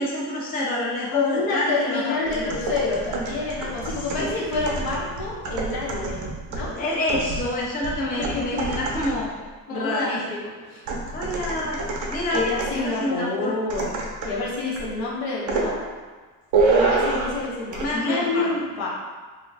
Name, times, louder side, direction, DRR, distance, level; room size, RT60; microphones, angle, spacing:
voice 1, 0.0-2.5 3.9-4.3 6.7-9.3 9.7-10.1 11.1-11.8 12.1-12.5 12.7-13.5 17.8-18.5, left 1 dB, 25° left, -5 dB, 0.5 m, -27 dB
voice 2, 1.1-6.2 6.5-6.7 8.2-8.4 9.7-10.8 12.3-13.9 14.2-15.8 16.7-18.9, left 3 dB, 70° left, -4 dB, 0.9 m, -27 dB
sound 1, 2.3-9.3 10.9-12.9 13.7-14.4 14.8-15.0 15.5-15.7 16.5-17.4 17.7-17.9, right 3 dB, 55° right, 0.5 m, -27 dB
2.5 x 2.1 x 3.2 m, 1.4 s
cardioid pair, 115°, 37 cm